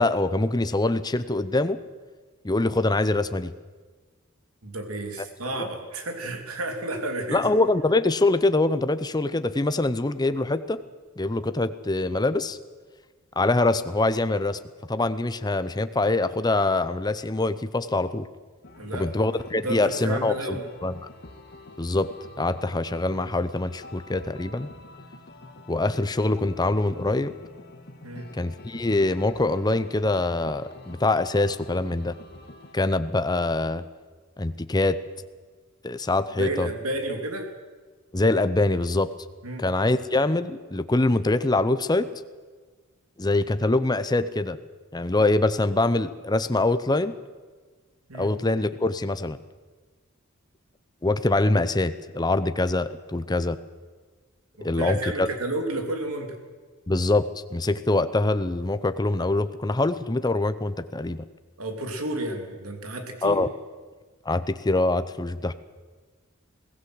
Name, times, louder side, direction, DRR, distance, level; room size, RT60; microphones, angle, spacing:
voice 1, 0.0-1.8 2.4-3.5 5.6-5.7 7.3-10.8 11.2-12.6 13.4-14.6 14.9-18.3 18.9-20.6 20.8-20.9 21.8-22.1 22.4-24.7 25.7-27.3 28.3-32.2 32.7-33.8 34.4-35.0 35.8-36.7 38.1-39.1 39.6-42.1 43.2-44.6 44.9-47.1 48.1-49.4 51.0-53.6 54.6-55.3 56.9-61.2 63.2-63.5 64.3-65.5, left 2 dB, 20° left, 12 dB, 0.7 m, -24 dB
voice 2, 4.6-7.5 18.7-19.3 19.6-20.7 28.0-28.3 36.4-37.5 39.4-39.6 48.1-48.3 54.6-56.4 61.6-63.4, right 1 dB, 90° right, 5 dB, 3.0 m, -31 dB
sound 1, 18.6-32.7, left 2 dB, 50° left, 1.7 m, -46 dB
22.0 x 16.5 x 7.8 m, 1.4 s
head